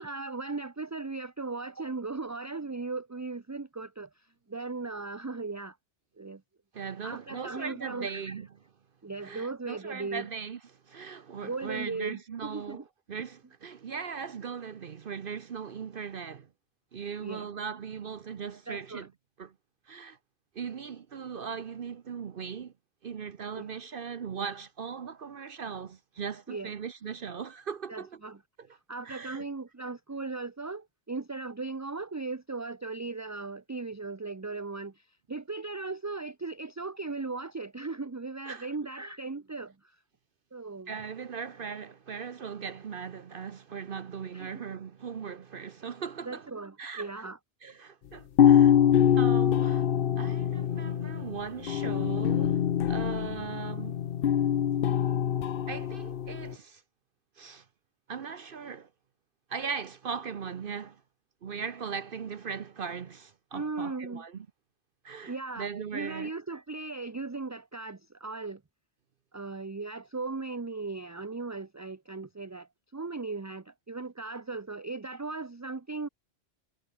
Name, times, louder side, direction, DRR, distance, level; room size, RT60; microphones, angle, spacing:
voice 1, 0.0-5.8 6.2-6.4 7.0-8.3 9.0-10.3 11.4-12.8 17.2-17.5 18.7-19.1 23.6-23.7 26.5-26.7 27.9-28.4 28.9-40.0 40.5-40.9 44.3-44.6 46.2-47.4 63.5-64.2 65.3-65.7 65.9-68.6 69.3-76.1, right 3 dB, 20° right, 0.6 m, -37 dB
voice 2, 6.7-8.5 9.2-12.8 13.1-16.5 16.9-19.1 19.4-19.5 19.9-20.2 20.5-22.7 23.0-28.2 28.6-28.7 29.0-29.5 38.5-38.7 40.9-46.5 46.8-47.1 47.6-48.8 49.1-49.9 50.2-54.0 55.7-56.8 57.4-57.7 58.1-58.9 59.5-61.0 61.4-64.5 65.0-66.3, right 6 dB, 55° right, 1.0 m, -39 dB
sound 1, 48.4-56.5, left 9 dB, 60° left, 0.9 m, -24 dB
omnidirectional pair, 1.2 m